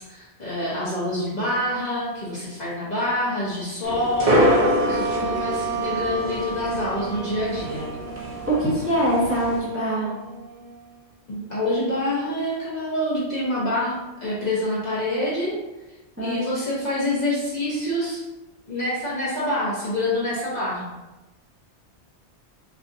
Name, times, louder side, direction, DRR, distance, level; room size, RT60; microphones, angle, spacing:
voice 1, 0.0-7.9 11.3-15.5 16.2-18.2 18.7-20.9, left 1 dB, 40° left, -8 dB, 0.9 m, -26 dB
sound 1, 3.8-9.6, equal, 40° right, 0.6 m, -26 dB
sound 2, 4.4-11.1, right 4 dB, 70° right, 1.3 m, -32 dB
voice 2, 8.5-10.1 16.2-16.4, right 1 dB, 15° right, -9 dB, 1.0 m, -23 dB
4.4 x 2.5 x 2.5 m, 1.1 s
omnidirectional pair, 1.2 m